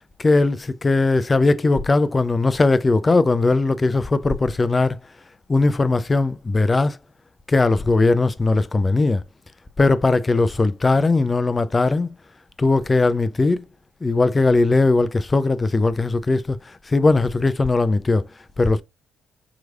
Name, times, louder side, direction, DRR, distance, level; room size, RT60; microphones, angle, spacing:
voice 1, 0.2-5.0 5.5-7.0 7.5-9.2 9.8-12.1 12.6-13.6 14.0-18.3 18.6-18.8, left 3 dB, 30° left, 0.4 m, -19 dB
4.8 x 3.1 x 2.3 m
hypercardioid pair, 45°, 0 cm